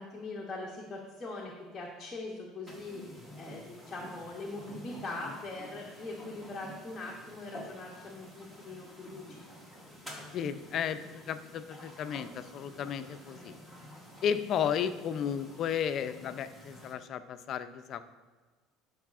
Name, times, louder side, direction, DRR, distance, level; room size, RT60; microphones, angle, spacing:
voice 1, 0.0-3.0 3.4-9.6, left 2 dB, 15° left, -2 dB, 0.8 m, -42 dB
sound 1, 2.7-16.9, equal, 10° right, 1.0 m, -50 dB
voice 2, 10.3-11.0 11.3-13.5 14.2-18.1, left 8 dB, 40° left, 11 dB, 0.4 m, -33 dB
11.0 x 4.8 x 2.4 m, 1.4 s
cardioid pair, 150°, 0 cm